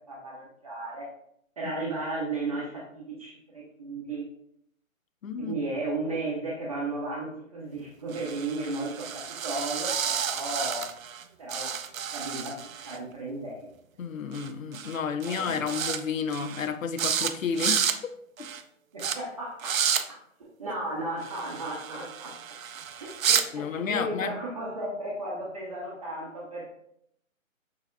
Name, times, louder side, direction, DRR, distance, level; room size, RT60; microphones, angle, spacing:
voice 1, 0.1-1.1 1.6-4.2 5.4-10.9 11.4-11.8 12.1-12.5 12.8-13.7 15.3-15.8 18.9-22.3 22.9-26.6, right 2 dB, 25° right, 0.7 m, -35 dB
voice 2, 5.2-5.6 14.0-18.0 23.5-24.3, left 6 dB, 70° left, 0.6 m, -31 dB
sound 1, 8.1-11.2 11.5-13.0 14.3-14.5 14.7-15.0 15.2-16.0 16.3-16.7 17.0-17.3 17.6-18.0 18.4-18.6 19.0-19.2 19.6-20.0 21.2-23.5, right 8 dB, 75° right, 0.5 m, -30 dB
6.7 x 2.7 x 2.2 m
figure-of-eight pair, 150°, 41 cm